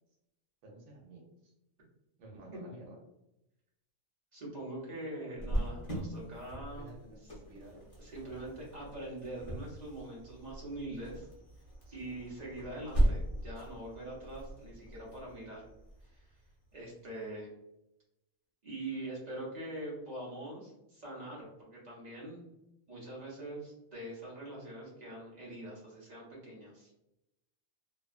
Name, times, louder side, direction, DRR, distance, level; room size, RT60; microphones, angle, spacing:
voice 1, 0.6-1.5 2.2-3.0 6.7-7.8 11.9-12.1, right 2 dB, 85° right, -1 dB, 1.1 m, -52 dB
voice 2, 4.3-6.9 7.2-7.3 8.0-11.3 11.9-15.7 16.0-16.3 16.7-17.5 18.6-22.4 22.9-26.9, right 1 dB, 40° right, -5 dB, 0.8 m, -43 dB
Cricket, 5.4-16.8, right 1 dB, 30° left, 0.7 m, -38 dB
2.6 x 2.2 x 2.4 m, 0.87 s
omnidirectional pair, 1.4 m